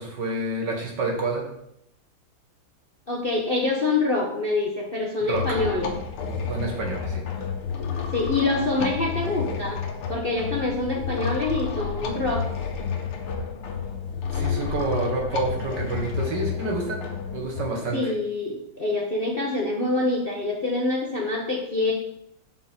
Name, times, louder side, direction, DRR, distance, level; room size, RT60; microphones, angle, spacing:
voice 1, 0.0-1.5 5.2-5.6 6.5-7.2 14.3-17.0 17.3-18.1, right 2 dB, 55° right, 1 dB, 2.1 m, -28 dB
voice 2, 3.1-5.9 8.1-9.8 10.1-12.5 17.9-21.9, left 2 dB, 35° left, -2 dB, 1.0 m, -25 dB
sound 1, 5.3-17.6, left 6 dB, 85° left, 1.9 m, -30 dB
7.7 x 7.1 x 4.4 m, 0.76 s
omnidirectional pair, 2.3 m